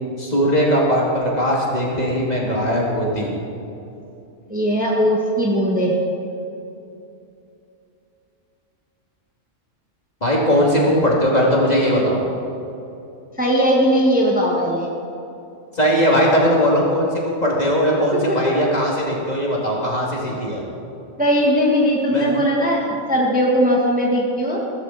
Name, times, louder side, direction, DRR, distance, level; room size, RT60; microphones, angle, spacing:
voice 1, 0.2-3.3 10.2-12.2 15.7-20.6 22.1-22.3, equal, 30° left, -3 dB, 2.6 m, -19 dB
voice 2, 4.5-5.9 13.4-14.9 18.1-18.5 21.2-24.6, equal, 5° right, -3 dB, 1.7 m, -19 dB
16.5 x 14.0 x 4.2 m, 2.8 s
omnidirectional pair, 1.3 m